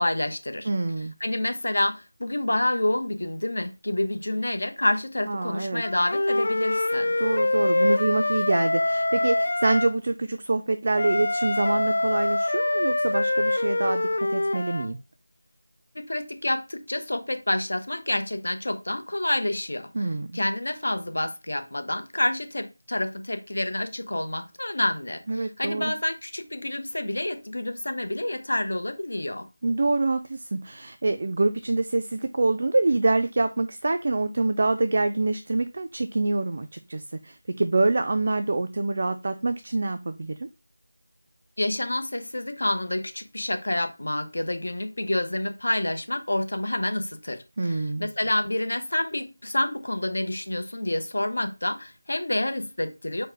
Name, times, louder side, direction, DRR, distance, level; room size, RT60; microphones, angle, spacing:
voice 1, 0.0-0.7 1.2-7.1 15.9-19.9 20.3-29.5 41.6-53.3, left 1 dB, 70° left, 0.9 m, -28 dB
voice 2, 0.7-1.1 5.3-5.8 7.2-15.0 19.9-20.3 25.3-25.9 29.6-40.5 47.6-48.1, right 2 dB, 35° right, 0.3 m, -26 dB
Wind instrument woodwind instrument, 5.8-9.9 11.0-14.9, left 2 dB, 45° left, 0.3 m, -25 dB
4.6 x 2.1 x 4.6 m
figure-of-eight pair, 180°, 0 cm